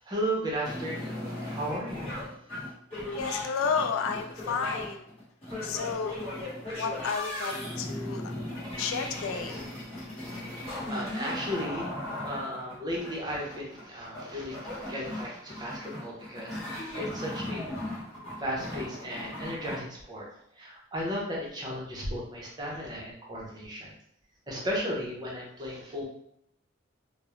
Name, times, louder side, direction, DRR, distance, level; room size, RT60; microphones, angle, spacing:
voice 1, 0.0-2.2 10.9-11.9 12.2-17.7 18.4-23.9 24.5-26.0, equal, 20° right, -4 dB, 0.6 m, -35 dB
sound 1, 0.6-19.7, left 1 dB, 30° left, 1.1 m, -37 dB
voice 2, 3.1-5.1 5.6-6.2 6.8-8.3 8.8-9.6, left 5 dB, 85° left, 5 dB, 0.3 m, -31 dB
2.3 x 2.0 x 3.0 m, 0.71 s
head